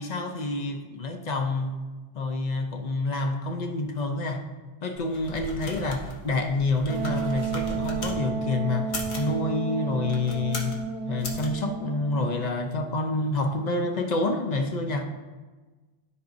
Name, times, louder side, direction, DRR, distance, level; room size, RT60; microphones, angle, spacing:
voice 1, 0.0-1.8 2.1-4.5 4.8-10.8 11.1-15.0, left 2 dB, 45° left, 4 dB, 0.7 m, -28 dB
sound 1, 5.0-8.2 8.8-9.3 10.0-10.8 11.2-11.5, left 2 dB, 90° left, 1.3 m, -37 dB
Wind instrument woodwind instrument, 6.9-12.4, right 6 dB, 75° right, 0.9 m, -32 dB
12.5 x 4.8 x 2.6 m, 1.3 s
omnidirectional pair, 1.1 m